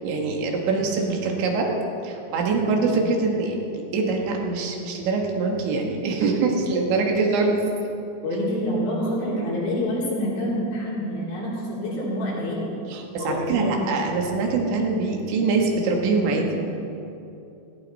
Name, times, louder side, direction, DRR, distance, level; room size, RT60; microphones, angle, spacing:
voice 1, 0.0-1.8 2.0-7.6 12.9-16.6, right 3 dB, 90° right, 1 dB, 4.1 m, -24 dB
voice 2, 2.7-3.1 8.2-12.7 13.2-14.0, equal, 60° left, -7 dB, 5.7 m, -27 dB
18.0 x 16.0 x 4.3 m, 2.8 s
omnidirectional pair, 5.1 m